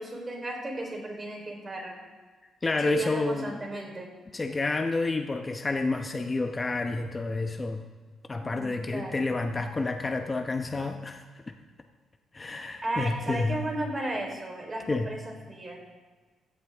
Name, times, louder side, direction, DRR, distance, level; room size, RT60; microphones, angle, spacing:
voice 1, 0.0-2.0 2.8-4.1 8.4-9.2 12.8-15.8, right 1 dB, 25° right, 1 dB, 4.0 m, -35 dB
voice 2, 2.6-3.6 4.3-7.8 8.3-11.5 12.3-13.6 14.9-15.1, left 3 dB, 25° left, 5 dB, 0.9 m, -29 dB
17.0 x 15.0 x 3.6 m, 1.4 s
cardioid pair, 90°, 0 cm